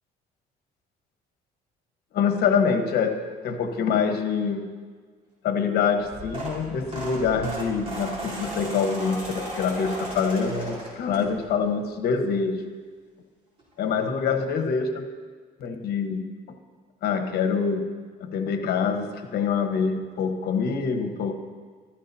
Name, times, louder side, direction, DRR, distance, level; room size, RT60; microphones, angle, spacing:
voice 1, 2.1-3.2 3.4-4.7 5.4-12.6 13.8-15.1 15.6-16.3 17.0-17.9 18.2-21.3, left 6 dB, 70° left, 5 dB, 1.2 m, -25 dB
sound 1, 6.0-11.6 12.1-12.4 13.6-13.7 13.9-14.0 14.4-14.5, right 1 dB, 35° right, 3.7 m, -36 dB
15.0 x 13.5 x 2.8 m, 1.5 s
cardioid pair, 110°, 17 cm